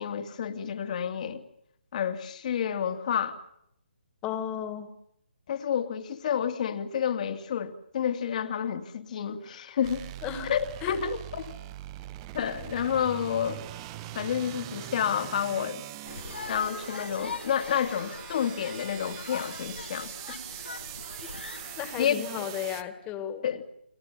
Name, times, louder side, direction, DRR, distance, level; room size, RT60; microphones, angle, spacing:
voice 1, 0.0-1.4 1.9-3.4 5.5-10.1 10.5-11.5 12.3-13.6 14.1-15.8 16.5-20.1 22.0-22.2 23.4-23.6, left 8 dB, 45° left, 7 dB, 2.5 m, -29 dB
voice 2, 4.2-4.9 10.2-10.5 10.8-11.0 20.3-20.4 21.8-23.4, left 9 dB, 20° left, 10 dB, 2.3 m, -34 dB
sound 1, 9.8-22.8, right 14 dB, 25° right, 1.2 m, -42 dB
sound 2, 16.0-22.1, left 5 dB, 70° left, 2.0 m, -42 dB
30.0 x 22.5 x 7.3 m, 0.76 s
figure-of-eight pair, 150°, 6 cm